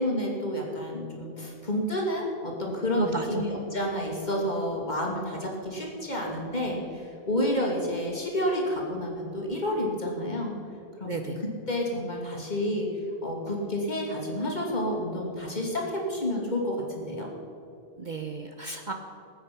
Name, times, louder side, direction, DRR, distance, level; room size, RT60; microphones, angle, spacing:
voice 1, 0.0-10.5 11.0-12.9 13.2-17.3, left 1 dB, 40° left, -1 dB, 2.7 m, -30 dB
voice 2, 2.9-3.4 11.0-11.4 18.0-18.9, right 3 dB, 45° right, 4 dB, 0.9 m, -33 dB
20.0 x 8.7 x 6.0 m, 2.7 s
omnidirectional pair, 1.2 m